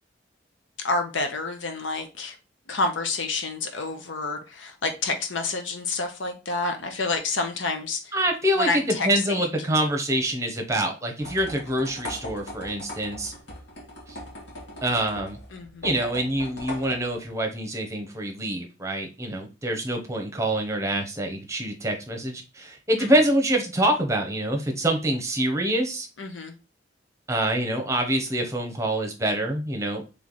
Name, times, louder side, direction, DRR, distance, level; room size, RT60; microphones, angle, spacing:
voice 1, 0.8-2.4 2.7-8.1 8.6-9.5 15.5-15.8 23.0-23.1 26.2-26.5, left 3 dB, 85° left, 0.9 m, -29 dB
voice 2, 8.1-13.3 14.1-14.2 14.8-15.4 15.8-26.1 27.3-30.0, right 1 dB, 15° right, 0.8 m, -26 dB
sound 1, 11.2-17.4, left 1 dB, 65° left, 1.4 m, -40 dB
3.3 x 3.2 x 3.9 m
head